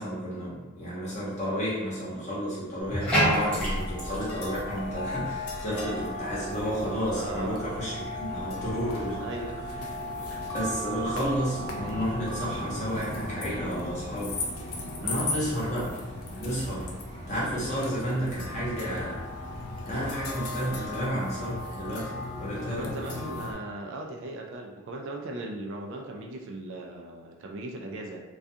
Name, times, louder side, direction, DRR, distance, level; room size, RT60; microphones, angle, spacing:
voice 1, 0.0-9.2 10.5-14.3 15.0-15.8 16.4-16.9 17.3-19.3 19.9-22.1 22.4-22.9, equal, 30° left, -8 dB, 0.9 m, -31 dB
Bathtub (filling or washing), 2.8-21.1, equal, 5° left, 0.7 m, -37 dB
sound 1, 3.6-23.5, left 1 dB, 75° left, 0.5 m, -36 dB
voice 2, 7.2-7.6 9.2-9.9 15.0-15.3 20.7-20.9 22.5-28.2, right 2 dB, 55° right, 1 dB, 0.3 m, -38 dB
2.3 x 2.2 x 2.7 m, 1.1 s
head